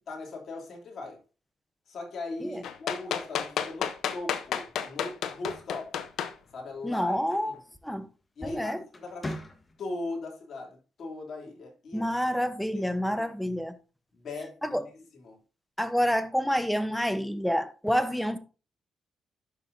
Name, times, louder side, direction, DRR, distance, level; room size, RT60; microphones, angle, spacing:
voice 1, 0.1-1.2 1.9-6.0 6.5-7.2 7.4-7.6 8.4-9.4 9.8-12.1 12.7-12.9 13.2-13.3 14.1-15.4, left 2 dB, 55° left, 3.1 m, -39 dB
sound 1, 2.6-6.3 7.3-7.4, left 9 dB, 75° left, 0.8 m, -31 dB
sound 2, 5.4-6.8 8.2-8.5 8.9-10.1, left 1 dB, 25° left, 1.3 m, -42 dB
voice 2, 6.8-7.6 7.8-8.1 8.4-8.8 11.9-13.8 14.6-14.8 15.8-18.4, equal, ahead, 0.9 m, -28 dB
11.5 x 5.7 x 2.7 m
cardioid pair, 90°, 0 cm